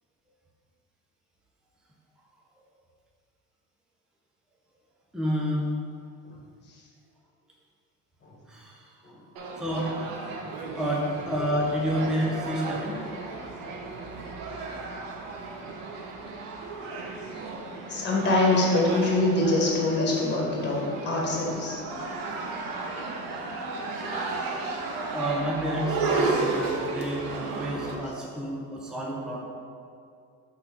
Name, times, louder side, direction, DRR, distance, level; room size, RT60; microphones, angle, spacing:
voice 1, 5.1-5.7 8.5-9.1 9.6-10.2 10.8-13.0 25.0-29.4, equal, ahead, -4 dB, 0.7 m, -30 dB
sound 1, 9.4-28.0, right 3 dB, 80° right, 1.1 m, -33 dB
voice 2, 17.9-21.8, left 2 dB, 30° left, -2 dB, 1.5 m, -24 dB
5.8 x 4.1 x 6.0 m, 2.4 s
cardioid pair, 165°, 34 cm